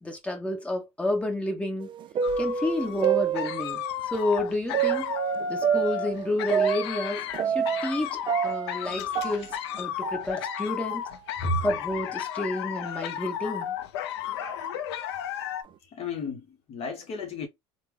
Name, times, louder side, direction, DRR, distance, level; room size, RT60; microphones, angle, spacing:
voice 1, 0.0-1.9 2.4-5.1 5.5-11.0 11.6-13.7, left 1 dB, 10° left, 1.2 m, -30 dB
sound 1, 1.8-4.0 4.7-8.0 8.3-10.6 10.9-11.0 11.8-11.9 12.6-12.8 13.5-13.6 14.4-14.7, right 8 dB, 35° right, 0.4 m, -28 dB
sound 2, 2.2-15.6, left 9 dB, 85° left, 0.4 m, -33 dB
voice 2, 15.9-17.5, left 1 dB, 50° left, 0.8 m, -32 dB
3.3 x 2.1 x 3.2 m
hypercardioid pair, 85°, 13 cm